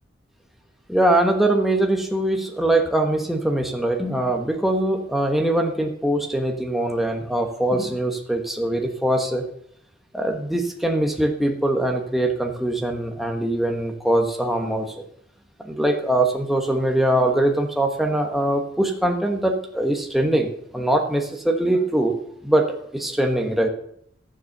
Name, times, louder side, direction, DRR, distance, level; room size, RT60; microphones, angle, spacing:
voice 1, 0.9-9.4 10.1-14.9 15.6-22.7 22.9-23.7, right 1 dB, ahead, 2 dB, 1.2 m, -22 dB
12.5 x 7.4 x 6.6 m, 0.69 s
head